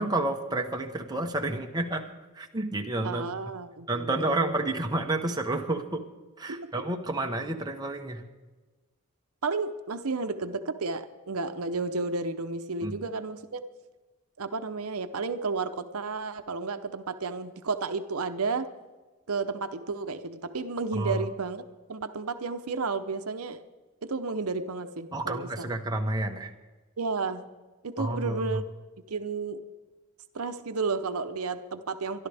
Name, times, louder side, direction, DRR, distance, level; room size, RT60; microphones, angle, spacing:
voice 1, 0.0-2.1 2.3-3.2 3.9-6.0 6.4-8.2 12.8-13.0 20.9-21.2 25.1-26.5 28.0-28.6, right 2 dB, 20° right, 3 dB, 1.1 m, -30 dB
voice 2, 3.0-4.7 6.5-6.8 9.4-13.6 14.4-18.7 19.3-21.6 21.9-23.6 24.0-25.7 27.0-27.5 27.8-28.6 29.1-29.6 30.3-32.3, right 4 dB, 80° right, 9 dB, 0.8 m, -32 dB
24.5 x 11.5 x 3.5 m, 1.2 s
head